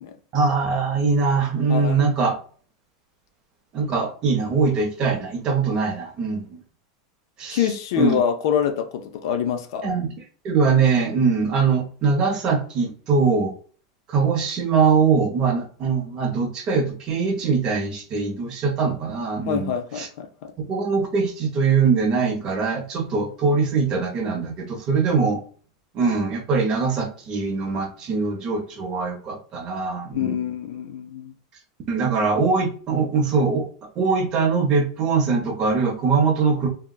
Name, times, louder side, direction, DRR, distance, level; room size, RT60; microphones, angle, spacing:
voice 1, 0.3-2.3 3.7-6.6 7.4-7.7 7.9-8.2 9.8-10.1 10.4-13.5 14.1-20.1 20.6-25.4 25.9-30.4 31.9-33.6 34.0-36.7, right 5 dB, 25° right, 0.6 m, -22 dB
voice 2, 1.7-2.0 7.5-9.9 19.5-20.5 30.1-31.3, left 8 dB, 55° left, 0.4 m, -25 dB
3.5 x 2.1 x 2.2 m
supercardioid pair, 175°, 3 cm